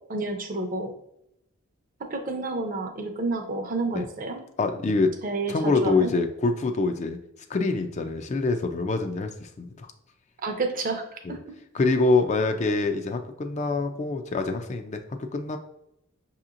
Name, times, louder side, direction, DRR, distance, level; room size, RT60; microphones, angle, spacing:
voice 1, 0.1-0.9 2.1-4.4 5.2-6.1 10.4-11.5, right 3 dB, 40° right, 5 dB, 0.6 m, -30 dB
voice 2, 4.6-5.1 5.5-7.2 7.5-9.9 11.2-11.4 11.7-15.6, left 3 dB, 35° left, 6 dB, 0.4 m, -25 dB
6.1 x 2.8 x 2.5 m, 0.80 s
head